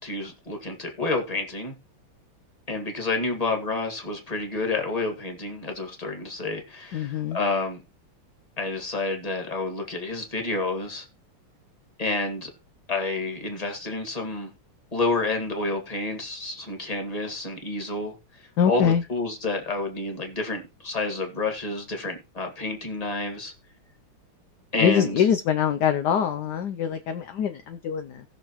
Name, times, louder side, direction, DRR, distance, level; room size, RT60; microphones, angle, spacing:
voice 1, 0.0-1.7 2.7-7.8 8.6-11.1 12.0-12.5 12.9-14.5 14.9-18.2 18.7-23.5 24.7-25.2, left 3 dB, 20° left, 1.8 m, -29 dB
voice 2, 6.9-7.4 18.6-19.0 24.8-28.2, left 8 dB, 65° left, 1.1 m, -24 dB
19.0 x 6.3 x 3.0 m
omnidirectional pair, 2.4 m